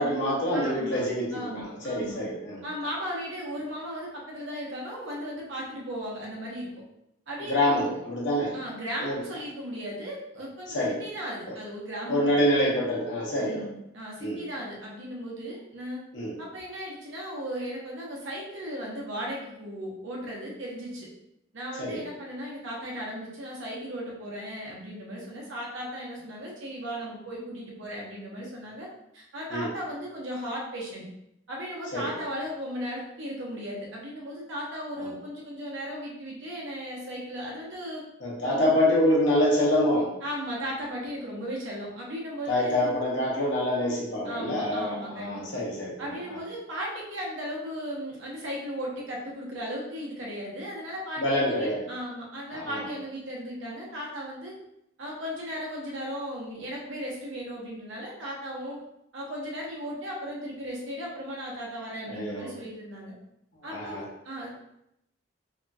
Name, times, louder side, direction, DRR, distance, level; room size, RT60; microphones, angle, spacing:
voice 1, 0.0-2.6 7.5-8.5 9.0-9.2 10.7-11.0 12.1-13.6 14.2-14.4 16.1-16.3 21.8-22.0 29.5-29.7 31.9-32.1 35.0-35.1 38.2-40.1 42.5-45.9 51.2-51.8 52.5-52.8 62.1-62.5 63.7-64.0, left 1 dB, 70° left, -4 dB, 0.8 m, -26 dB
voice 2, 0.5-1.0 1.3-2.2 2.6-6.7 7.3-8.0 8.5-10.7 11.0-12.5 13.4-16.0 16.4-21.1 21.5-28.9 29.1-31.0 31.5-38.0 38.4-38.7 40.2-43.0 44.2-45.6 46.0-54.5 55.0-58.8 59.1-63.1 63.6-64.6, equal, 75° right, -3 dB, 0.8 m, -36 dB
2.8 x 2.3 x 2.6 m, 0.81 s
head